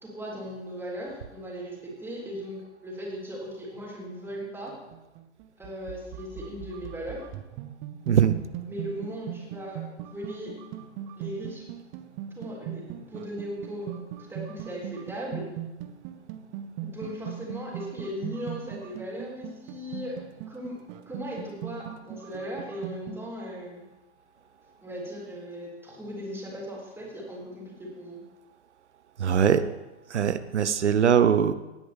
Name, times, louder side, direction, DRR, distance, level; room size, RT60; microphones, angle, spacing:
voice 1, 0.0-4.7 5.6-7.3 8.7-10.6 11.2-11.7 12.4-15.5 16.8-20.2 20.5-20.8 21.1-23.8 24.8-28.2, equal, 5° right, -3 dB, 3.7 m, -38 dB
sound 1, 4.3-23.3, right 10 dB, 35° right, 1.0 m, -40 dB
voice 2, 29.2-29.6 30.1-31.5, right 8 dB, 80° right, 13 dB, 0.8 m, -21 dB
17.5 x 9.4 x 3.5 m, 1.0 s
figure-of-eight pair, 105°, 34 cm